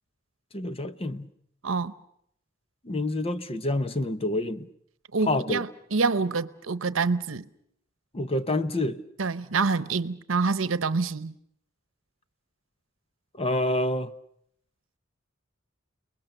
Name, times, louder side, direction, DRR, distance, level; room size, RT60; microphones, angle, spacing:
voice 1, 0.5-1.3 2.8-4.7 5.3-5.6 8.1-9.0 13.4-14.1, left 1 dB, 30° left, 0.9 m, -27 dB
voice 2, 1.6-1.9 5.1-7.5 9.2-11.3, right 4 dB, 80° right, 0.9 m, -26 dB
29.5 x 20.5 x 6.7 m
head